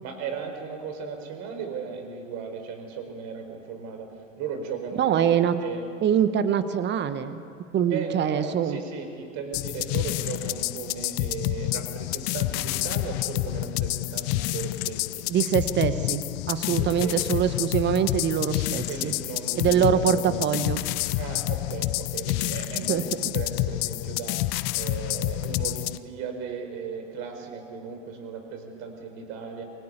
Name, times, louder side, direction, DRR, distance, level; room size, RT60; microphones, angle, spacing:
voice 1, 0.0-4.1 4.4-5.8 7.9-15.2 16.6-17.4 18.9-20.4 21.1-24.4 24.7-29.7, right 6 dB, 45° right, 6 dB, 5.1 m, -36 dB
voice 2, 4.9-5.5 6.0-7.4 7.7-8.8 15.3-16.2 16.5-19.1 19.6-20.8 22.7-23.0, right 9 dB, 30° right, 11 dB, 1.7 m, -24 dB
sound 1, 9.5-26.0, left 18 dB, 35° left, 0.7 m, -28 dB
28.0 x 22.0 x 8.4 m, 2.4 s
figure-of-eight pair, 85°, 39 cm